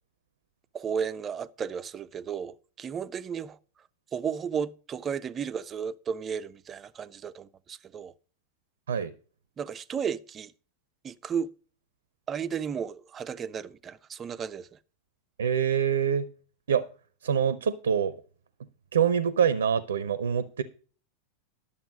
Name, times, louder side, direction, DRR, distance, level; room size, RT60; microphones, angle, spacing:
voice 1, 0.7-3.6 4.1-8.1 9.6-10.5 11.0-11.5 12.3-14.8, right 7 dB, 25° right, 0.5 m, -34 dB
voice 2, 15.4-16.3 16.7-16.9 17.2-18.2 18.9-20.6, right 7 dB, 65° right, 0.6 m, -25 dB
11.5 x 7.1 x 5.1 m
figure-of-eight pair, 90°, 0 cm